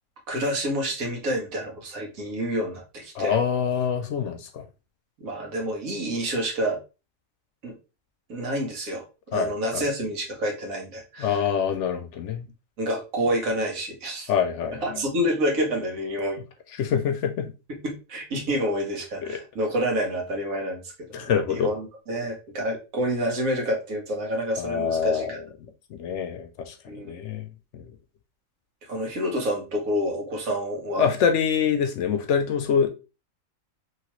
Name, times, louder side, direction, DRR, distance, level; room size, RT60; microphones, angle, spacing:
voice 1, 0.3-3.4 5.2-6.8 7.6-7.7 8.3-11.5 12.8-14.3 14.8-16.4 17.7-25.4 26.9-27.1 28.9-31.1, equal, 80° right, 1.5 m, -28 dB
voice 2, 3.2-4.6 9.3-9.9 11.2-12.4 14.3-15.0 16.8-17.5 19.2-19.4 21.1-21.7 24.6-25.4 25.9-27.5 27.7-27.8 31.0-32.9, left 7 dB, 70° left, 0.8 m, -25 dB
3.0 x 2.9 x 2.9 m
omnidirectional pair, 1.4 m